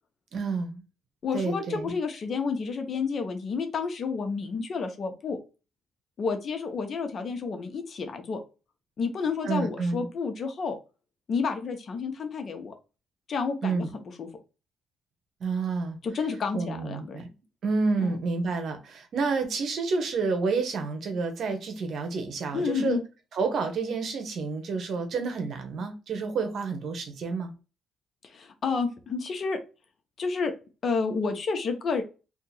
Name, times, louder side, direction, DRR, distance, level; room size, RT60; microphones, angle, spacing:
voice 1, 0.3-0.8 1.3-1.9 9.4-10.1 13.6-13.9 15.4-16.0 16.5-17.3 17.6-23.0 23.3-27.5, right 4 dB, 65° right, 1.0 m, -29 dB
voice 2, 1.2-5.4 6.2-8.4 9.0-10.8 11.3-12.7 13.3-13.8 14.2-14.3 16.0-17.2 18.0-18.2 22.5-23.0 28.2-29.6 30.2-30.5 30.8-32.0, left 5 dB, 50° left, 0.8 m, -30 dB
2.8 x 2.5 x 4.0 m
cardioid pair, 90°, 0 cm